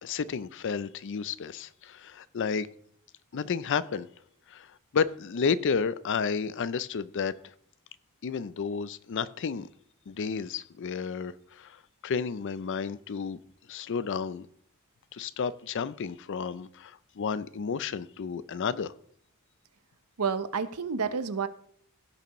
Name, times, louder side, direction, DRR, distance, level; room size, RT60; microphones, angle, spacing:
voice 1, 0.0-2.7 3.3-4.1 4.5-4.7 4.9-7.4 8.2-9.7 10.1-13.4 13.7-14.5 15.1-18.9, left 6 dB, 55° left, 0.4 m, -31 dB
voice 2, 20.2-21.5, right 5 dB, 90° right, 0.8 m, -30 dB
17.0 x 6.9 x 3.0 m
head